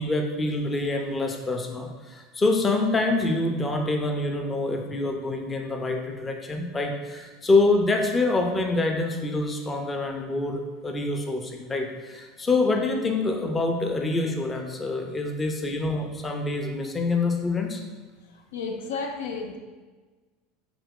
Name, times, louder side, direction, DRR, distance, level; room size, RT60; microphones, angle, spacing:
voice 1, 0.0-17.8, left 2 dB, 20° left, 3 dB, 0.6 m, -26 dB
voice 2, 18.2-19.6, left 4 dB, 85° left, 3 dB, 0.4 m, -33 dB
3.4 x 2.9 x 3.7 m, 1.3 s
hypercardioid pair, 95°, 0 cm